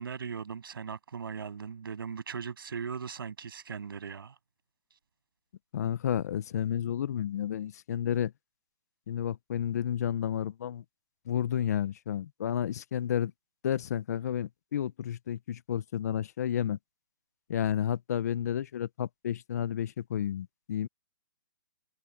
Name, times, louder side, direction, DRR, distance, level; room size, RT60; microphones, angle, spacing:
voice 1, 0.0-4.4, right 6 dB, 85° right, 7.4 m, -38 dB
voice 2, 5.7-8.3 9.1-10.8 11.3-13.3 13.6-16.8 17.5-20.9, left 10 dB, 45° left, 0.6 m, -31 dB
hypercardioid pair, 170°, 12 cm